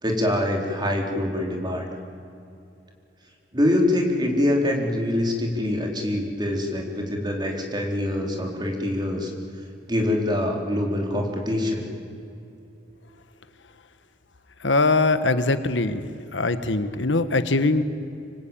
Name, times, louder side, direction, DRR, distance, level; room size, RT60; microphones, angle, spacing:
voice 1, 0.0-1.9 3.5-9.3 9.9-11.9, left 1 dB, 25° right, 2 dB, 3.9 m, -24 dB
voice 2, 14.6-17.8, left 3 dB, 85° left, 11 dB, 1.4 m, -22 dB
26.5 x 24.0 x 9.0 m, 2.7 s
head